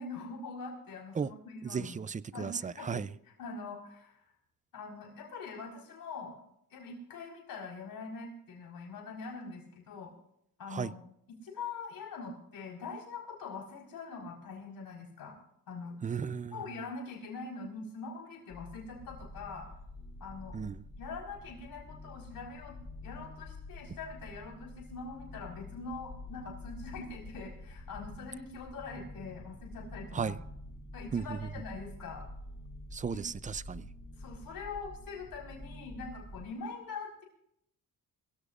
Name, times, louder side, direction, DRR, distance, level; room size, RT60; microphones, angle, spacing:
voice 1, 0.0-2.0 2.3-4.2 4.7-6.4 6.7-10.1 10.6-11.0 11.3-15.4 15.7-16.0 16.5-19.7 20.2-20.6 21.0-30.4 30.9-32.3 33.1-33.3 34.2-37.2, left 4 dB, 85° left, 4.6 m, -43 dB
voice 2, 1.6-3.1 10.7-10.9 16.0-16.6 20.5-20.8 30.1-30.4 31.1-31.5 32.9-33.9, right 6 dB, 20° right, 0.4 m, -35 dB
sound 1, 18.5-36.5, left 2 dB, 30° left, 2.4 m, -47 dB
22.0 x 16.0 x 2.5 m
cardioid pair, 95°, 34 cm